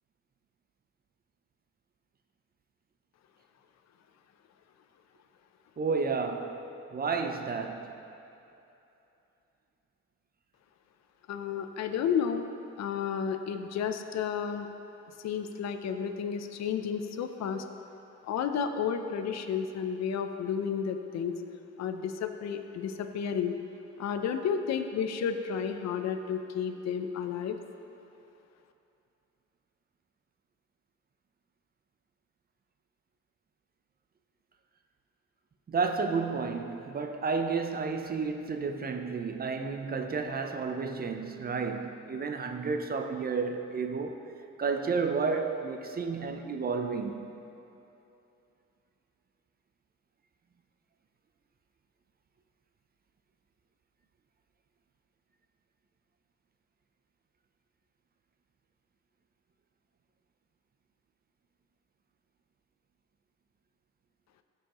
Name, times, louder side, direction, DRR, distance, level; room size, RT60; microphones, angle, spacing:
voice 1, 5.8-6.6 6.9-7.9 35.7-44.2 44.6-47.3, right 4 dB, 30° right, 0.5 m, -31 dB
voice 2, 11.3-12.5 12.8-14.7 15.2-17.6 18.2-21.3 21.8-23.5 24.0-27.6, left 7 dB, 60° left, 0.6 m, -32 dB
14.0 x 4.7 x 3.0 m
cardioid pair, 90°, 30 cm